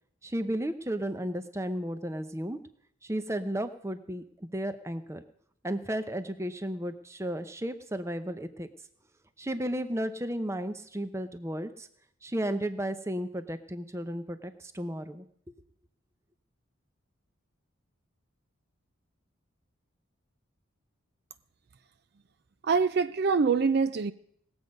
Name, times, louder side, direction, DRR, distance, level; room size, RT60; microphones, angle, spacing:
voice 1, 0.2-2.6 3.0-5.2 5.6-8.7 9.4-11.9 12.2-15.2, right 1 dB, 15° right, 0.7 m, -33 dB
voice 2, 22.6-24.1, right 5 dB, 50° right, 0.4 m, -24 dB
20.0 x 7.9 x 5.3 m
head